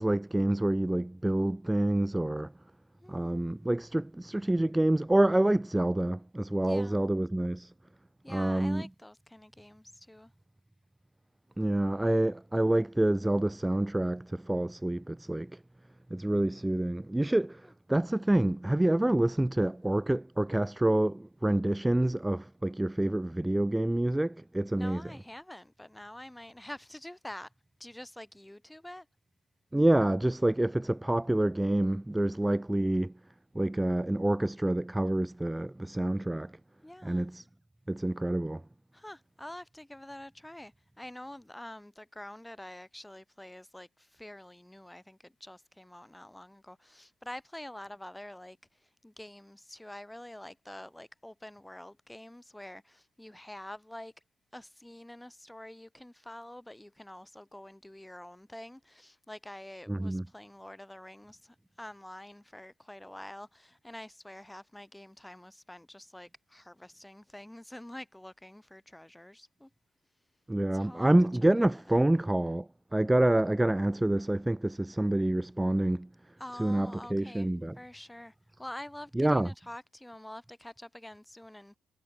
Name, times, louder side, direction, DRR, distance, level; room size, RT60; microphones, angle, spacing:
voice 1, 0.0-2.5 3.1-7.7 8.3-8.8 11.6-15.5 16.1-17.6 17.9-25.0 29.7-33.1 33.6-36.5 37.0-37.4 37.9-38.6 59.9-60.2 70.5-76.1 76.6-77.8 79.2-79.5, right 1 dB, 10° right, 2.0 m, -27 dB
voice 2, 3.0-3.4 6.6-7.1 8.2-10.3 17.6-17.7 24.7-27.5 27.8-29.1 36.8-37.3 38.9-54.1 54.5-69.7 70.7-71.1 71.4-72.0 76.4-77.5 77.7-81.8, left 1 dB, 10° left, 7.7 m, -47 dB
figure-of-eight pair, 45°, 0 cm